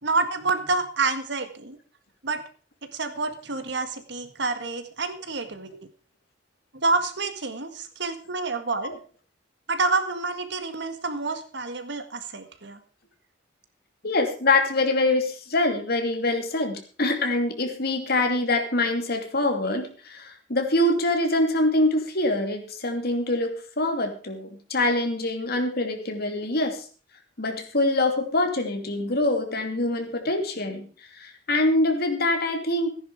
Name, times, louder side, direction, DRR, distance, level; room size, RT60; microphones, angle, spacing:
voice 1, 0.0-1.8 2.2-2.4 2.8-5.7 6.7-8.9 9.7-12.8, right 3 dB, 65° right, 9 dB, 1.7 m, -28 dB
voice 2, 14.0-26.8 27.4-30.9 31.1-32.9, left 2 dB, 55° left, 5 dB, 2.8 m, -24 dB
14.5 x 10.0 x 5.0 m, 0.38 s
head